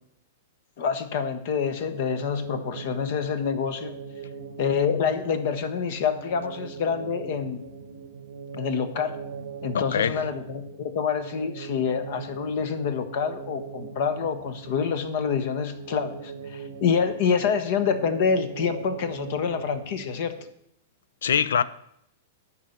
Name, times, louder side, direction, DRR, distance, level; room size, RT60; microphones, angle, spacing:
voice 1, 0.8-4.0 4.6-7.6 8.6-9.2 9.6-20.4, left 6 dB, 55° left, 1.1 m, -27 dB
sound 1, 1.7-20.5, right 5 dB, 75° right, 0.8 m, -40 dB
voice 2, 9.7-10.3 21.2-21.6, left 8 dB, 70° left, 0.5 m, -23 dB
11.0 x 4.3 x 7.9 m
hypercardioid pair, 105°, 0 cm